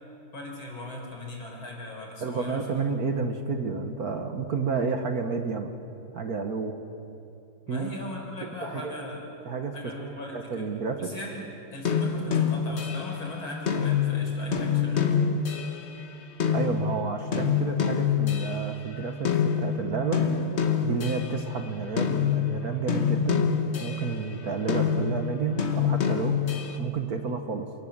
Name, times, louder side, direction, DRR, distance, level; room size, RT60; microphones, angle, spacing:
voice 1, 0.3-2.7 7.7-9.2 9.7-10.7 10.9-15.1, left 1 dB, 70° left, 0 dB, 5.4 m, -39 dB
voice 2, 2.2-5.7 6.1-6.7 7.7-7.9 8.6-8.9 9.4-11.1 16.5-20.3 20.8-23.4 23.8-26.4 26.8-27.7, right 5 dB, 50° right, 6 dB, 1.5 m, -31 dB
sound 1, 11.9-19.0 19.3-21.6 22.0-24.3 24.7-26.8, left 7 dB, 40° left, 1.2 m, -26 dB
28.0 x 18.0 x 7.3 m, 2.8 s
omnidirectional pair, 2.3 m